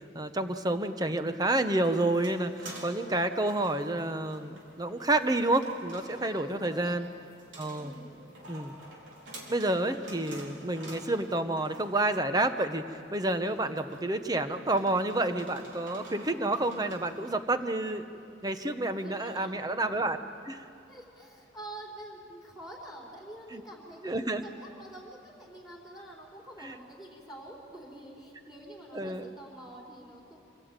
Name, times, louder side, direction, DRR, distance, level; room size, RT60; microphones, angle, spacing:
voice 1, 0.1-7.1 7.6-7.9 8.5-8.8 9.5-12.8 13.1-18.1 18.4-20.2 20.5-20.6 23.5-23.6 24.0-24.4 28.9-29.3, right 2 dB, 20° right, 8 dB, 1.0 m, -29 dB
sound 1, 1.7-17.3, right 1 dB, 75° right, 4.2 m, -49 dB
voice 2, 6.3-7.0 7.7-8.2 19.0-19.5 20.9-30.4, right 1 dB, ahead, -2 dB, 3.8 m, -47 dB
26.0 x 18.5 x 9.0 m, 2.6 s
head